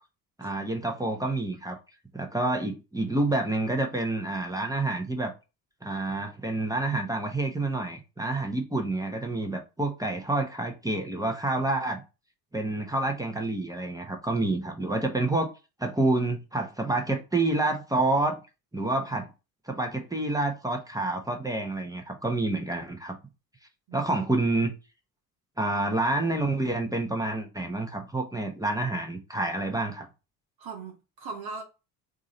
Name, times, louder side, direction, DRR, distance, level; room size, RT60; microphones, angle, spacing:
voice 1, 0.4-1.8 2.1-5.3 5.8-12.0 12.5-15.5 15.8-18.4 18.7-19.3 19.7-23.2 23.9-24.7 25.6-30.1, right 2 dB, 5° right, 1.0 m, -28 dB
voice 2, 30.6-31.6, right 4 dB, 50° right, 0.9 m, -39 dB
3.7 x 2.7 x 4.1 m
hypercardioid pair, 55°, 48 cm